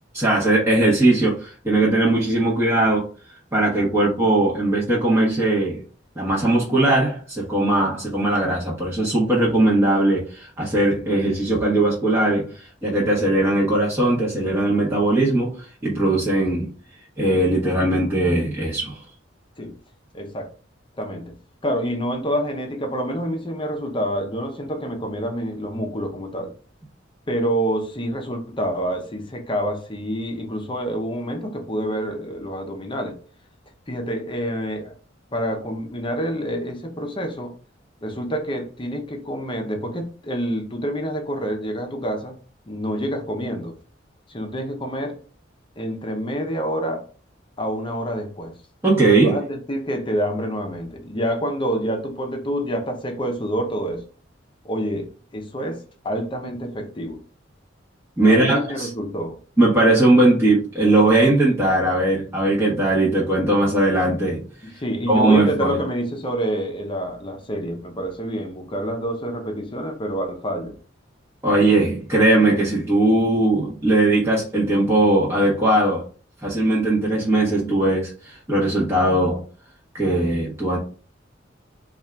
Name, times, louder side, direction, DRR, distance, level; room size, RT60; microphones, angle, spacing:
voice 1, 0.1-3.0 3.5-5.8 6.2-16.7 17.2-19.0 48.8-49.4 58.2-58.9 59.6-64.4 65.1-65.8 71.4-76.0 76.4-79.4 79.9-80.8, right 2 dB, 15° right, -6 dB, 1.0 m, -19 dB
voice 2, 20.1-20.5 21.0-21.3 21.6-26.5 27.3-33.1 33.9-34.9 35.3-37.5 38.0-42.3 42.7-43.7 44.3-45.2 45.8-47.0 47.6-48.5 49.1-54.0 54.6-57.2 58.3-59.4 64.6-70.8, equal, 25° left, 4 dB, 0.8 m, -27 dB
4.2 x 2.5 x 3.3 m, 0.38 s
head